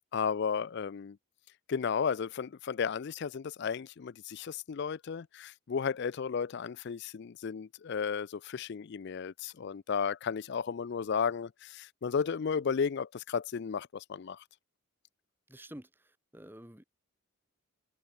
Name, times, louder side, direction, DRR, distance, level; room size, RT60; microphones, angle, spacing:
voice 1, 0.1-1.2 1.7-14.4, left 6 dB, 50° left, 0.4 m, -34 dB
voice 2, 15.5-16.8, equal, 10° right, 2.1 m, -50 dB
head